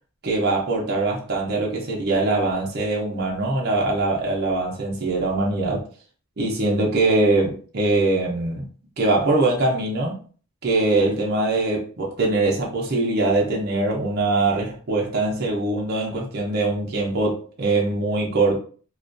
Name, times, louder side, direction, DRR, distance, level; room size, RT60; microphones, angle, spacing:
voice 1, 0.2-5.9 6.4-8.7 9.0-10.2 10.6-18.6, right 2 dB, 45° right, 0.5 m, -22 dB
2.4 x 2.2 x 2.5 m
head